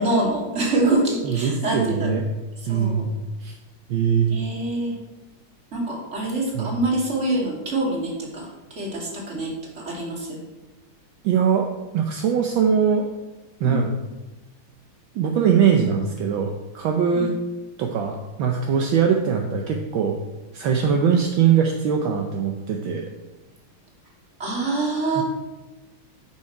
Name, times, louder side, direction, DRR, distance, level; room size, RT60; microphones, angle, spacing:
voice 1, 0.0-2.2 2.6-3.0 4.3-4.9 5.7-10.4 13.6-13.9 17.2-17.3 20.8-20.9 24.4-25.2, right 2 dB, 35° right, -2 dB, 2.4 m, -25 dB
voice 2, 1.2-2.2 2.7-3.1 3.4-3.5 3.9-4.3 6.5-6.7 11.2-13.1 13.6-13.9 15.1-17.3 17.8-20.2 20.5-23.1 25.2-25.3, right 7 dB, 75° right, 2 dB, 1.5 m, -21 dB
11.5 x 5.7 x 4.6 m, 1.1 s
omnidirectional pair, 2.3 m